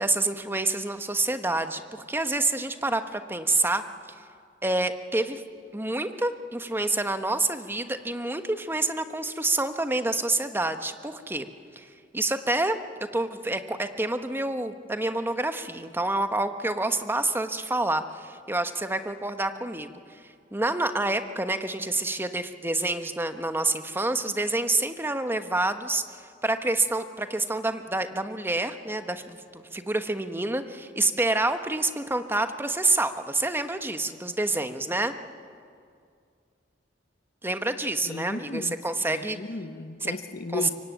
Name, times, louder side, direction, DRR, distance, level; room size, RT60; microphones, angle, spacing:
voice 1, 0.0-3.8 4.6-5.4 5.7-11.5 11.7-12.8 13.1-20.2 20.5-26.0 26.4-35.1 37.4-39.4 40.0-40.1 40.5-40.7, right 2 dB, 10° right, 8 dB, 1.2 m, -28 dB
voice 2, 38.0-38.8 39.1-40.7, left 3 dB, 55° left, 8 dB, 1.1 m, -35 dB
24.5 x 24.0 x 9.2 m, 2.3 s
head